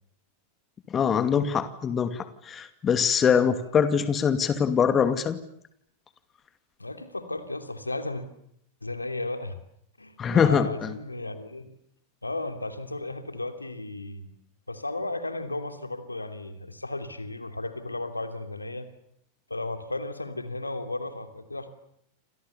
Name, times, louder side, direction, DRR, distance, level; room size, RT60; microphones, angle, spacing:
voice 1, 0.9-5.4 10.2-10.9, left 7 dB, 25° left, 11 dB, 2.4 m, -23 dB
voice 2, 6.8-8.2 8.8-9.6 10.0-11.7 12.2-14.3 14.7-18.9 19.5-21.7, left 2 dB, 85° left, 8 dB, 2.9 m, -34 dB
29.5 x 27.5 x 7.0 m, 0.71 s
figure-of-eight pair, 90°, 0 cm